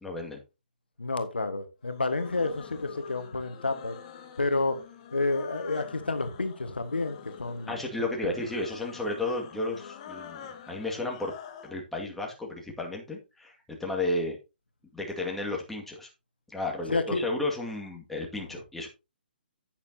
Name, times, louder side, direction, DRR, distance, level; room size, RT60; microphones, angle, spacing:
voice 1, 0.0-0.4 7.7-11.3 11.6-14.4 14.9-16.1 16.5-18.9, left 2 dB, 5° left, 2.1 m, -33 dB
voice 2, 1.0-4.0 4.4-4.8 5.1-7.7 8.2-8.4 16.9-17.3, left 3 dB, 75° left, 1.5 m, -30 dB
sound 1, 1.9-11.8, left 8 dB, 35° left, 1.4 m, -47 dB
9.8 x 9.1 x 2.8 m
figure-of-eight pair, 135°, 6 cm